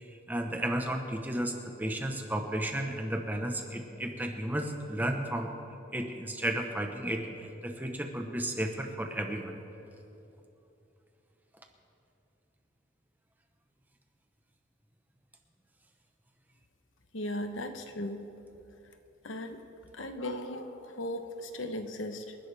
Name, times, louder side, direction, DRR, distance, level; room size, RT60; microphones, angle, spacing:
voice 1, 0.3-1.5 1.8-5.5 5.9-9.6, right 1 dB, 10° right, 3 dB, 1.0 m, -33 dB
voice 2, 17.1-18.3 19.2-19.6 19.9-22.4, left 1 dB, 85° left, 7 dB, 1.0 m, -37 dB
27.0 x 11.0 x 3.5 m, 2.9 s
head